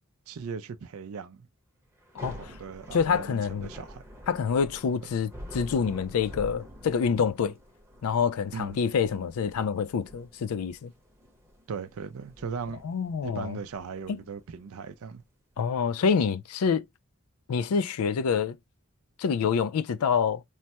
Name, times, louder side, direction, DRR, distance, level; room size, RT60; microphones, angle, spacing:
voice 1, 0.3-1.5 2.3-4.0 8.5-8.8 11.7-12.8 13.2-15.2, right 6 dB, 75° right, 0.4 m, -38 dB
Thunder / Rain, 2.0-15.2, equal, 10° right, 0.8 m, -47 dB
voice 2, 2.9-3.7 4.3-7.6 8.0-10.9 12.8-13.6 14.1-14.2 15.6-16.8 17.5-18.6 19.2-20.4, left 6 dB, 80° left, 0.4 m, -27 dB
3.2 x 2.1 x 2.8 m
head